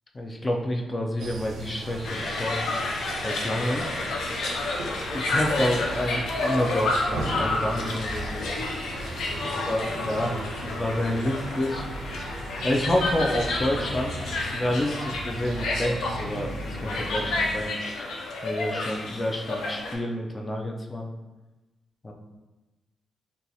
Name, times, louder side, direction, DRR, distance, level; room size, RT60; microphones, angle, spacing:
voice 1, 0.2-2.6 3.2-3.9 5.1-8.6 9.7-11.9 12.6-14.2 14.5-17.7 18.4-21.1 22.0-22.1, left 1 dB, 25° left, 1 dB, 0.4 m, -29 dB
sound 1, 1.2-17.6, right 2 dB, 85° right, 0.5 m, -37 dB
sound 2, 2.0-19.9, left 2 dB, 80° left, 0.5 m, -30 dB
2.8 x 2.3 x 3.9 m, 1.1 s
cardioid pair, 80°, 0 cm